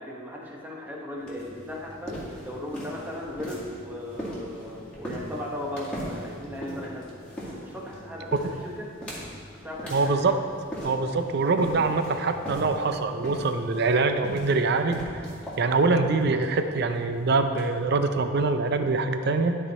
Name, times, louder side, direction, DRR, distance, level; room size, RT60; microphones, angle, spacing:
voice 1, 0.0-7.2 7.6-8.9 9.6-10.1, left 1 dB, 10° right, -3 dB, 1.0 m, -37 dB
sound 1, 1.2-18.7, equal, 5° left, 2.1 m, -40 dB
voice 2, 9.9-10.3 10.8-15.2 15.6-19.6, right 3 dB, 55° right, 8 dB, 0.5 m, -24 dB
12.0 x 4.5 x 4.2 m, 2.2 s
head